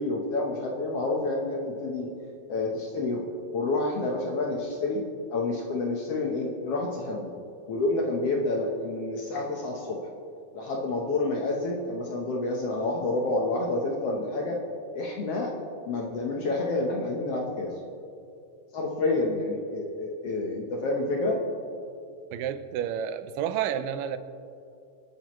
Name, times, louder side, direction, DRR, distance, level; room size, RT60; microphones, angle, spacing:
voice 1, 0.0-2.1 2.5-3.2 3.5-5.0 5.3-7.3 7.7-10.0 10.5-14.6 14.9-15.5 15.8-17.7 18.7-21.4, left 2 dB, 60° left, -1 dB, 1.7 m, -29 dB
voice 2, 22.3-24.2, right 9 dB, 85° right, 11 dB, 2.3 m, -30 dB
26.0 x 8.9 x 3.1 m, 2.6 s
omnidirectional pair, 3.9 m